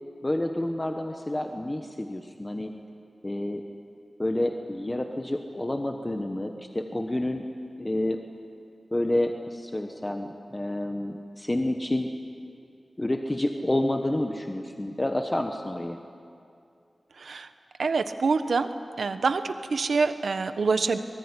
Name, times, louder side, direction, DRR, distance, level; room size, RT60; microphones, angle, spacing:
voice 1, 0.2-2.7 3.2-3.6 4.2-7.4 7.8-8.2 8.9-12.1 13.0-16.0, left 1 dB, 20° left, 4 dB, 1.2 m, -29 dB
voice 2, 17.8-18.7 19.0-21.0, right 4 dB, 85° right, 9 dB, 1.2 m, -26 dB
23.5 x 20.5 x 9.9 m, 2.5 s
wide cardioid pair, 105°, 0 cm